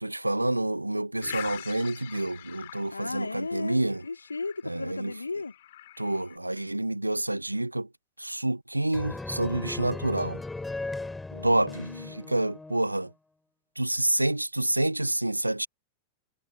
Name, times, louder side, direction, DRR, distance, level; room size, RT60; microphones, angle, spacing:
voice 1, 0.0-4.0 4.6-5.1 6.0-7.9 8.2-10.4 11.4-13.1 13.8-15.7, right 1 dB, 85° right, 0.8 m, -28 dB
sound 1, 1.2-6.4, left 13 dB, 55° left, 3.4 m, -44 dB
voice 2, 2.9-5.5 11.3-12.5, left 3 dB, 80° left, 2.7 m, -36 dB
sound 2, 8.9-13.1, left 2 dB, 10° left, 4.7 m, -37 dB
figure-of-eight pair, 90°, 0 cm